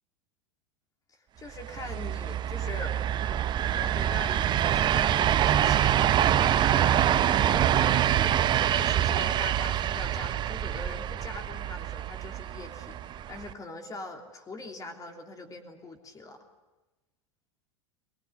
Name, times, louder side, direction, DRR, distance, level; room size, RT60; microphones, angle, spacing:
voice 1, 1.4-3.0 3.7-16.4, left 2 dB, 25° left, 4 dB, 3.1 m, -43 dB
sound 1, 1.6-13.5, right 10 dB, 30° right, 0.8 m, -25 dB
23.0 x 20.0 x 9.5 m, 1.1 s
figure-of-eight pair, 90°, 15 cm